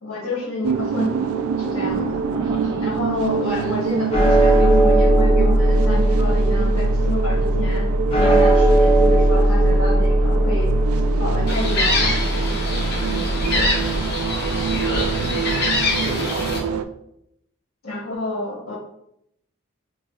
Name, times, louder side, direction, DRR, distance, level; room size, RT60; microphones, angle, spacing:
voice 1, 0.0-2.2 2.8-7.9 8.2-10.7 11.1-12.2 13.0-13.4 17.8-18.7, left 1 dB, 75° left, -4 dB, 1.3 m, -29 dB
sound 1, 0.6-16.8, right 6 dB, 90° right, 0.3 m, -26 dB
voice 2, 1.8-2.9 3.6-3.8 14.2-14.8 15.9-16.8, right 1 dB, 20° right, -3 dB, 0.4 m, -36 dB
sound 2, 4.1-14.5, right 1 dB, 25° left, 0.6 m, -18 dB
Gull seagull, 11.5-16.6, left 2 dB, 50° left, 0.9 m, -24 dB
5.7 x 2.4 x 2.4 m, 0.76 s
head